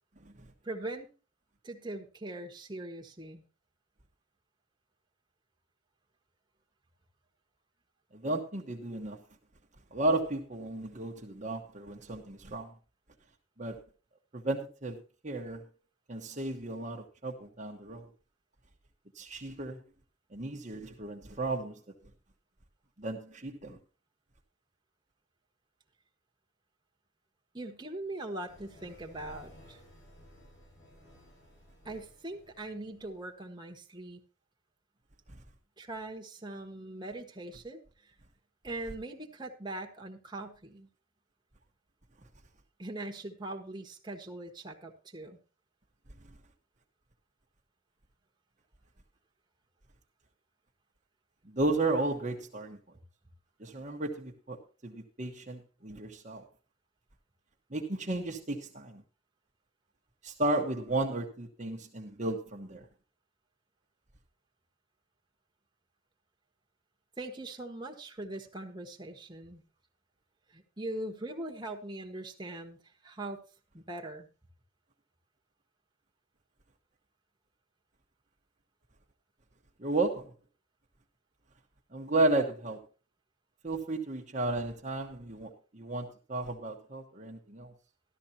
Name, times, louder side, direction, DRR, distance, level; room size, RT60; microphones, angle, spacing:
voice 1, 0.6-1.1 1.6-3.4 27.5-29.8 31.8-34.2 35.8-38.1 38.6-40.9 42.8-45.4 67.2-69.6 70.5-72.8 73.0-73.4 73.7-74.3, right 2 dB, 20° right, 1.4 m, -41 dB
voice 2, 8.1-9.2 9.9-12.7 13.6-13.8 14.3-15.6 16.1-18.1 19.1-19.8 20.3-21.8 23.0-23.8 35.3-35.4 51.4-52.8 53.6-56.4 57.7-59.0 60.2-62.9 79.8-80.3 81.9-82.8 83.6-87.7, right 2 dB, 40° right, 1.2 m, -33 dB
sound 1, 28.5-33.3, equal, 65° left, 7.0 m, -56 dB
13.5 x 12.5 x 2.8 m
head